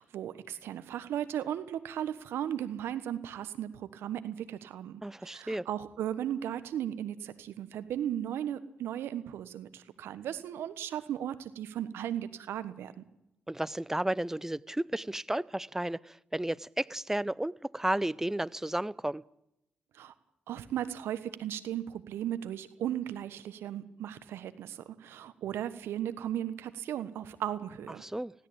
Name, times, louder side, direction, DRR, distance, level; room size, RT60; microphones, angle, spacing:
voice 1, 0.0-12.9 20.0-20.1 20.5-28.0, right 10 dB, 75° right, 1.4 m, -36 dB
voice 2, 5.0-5.7 13.5-19.2 28.0-28.3, right 1 dB, 10° right, 0.7 m, -33 dB
19.5 x 16.5 x 8.9 m
hypercardioid pair, 40°, 4 cm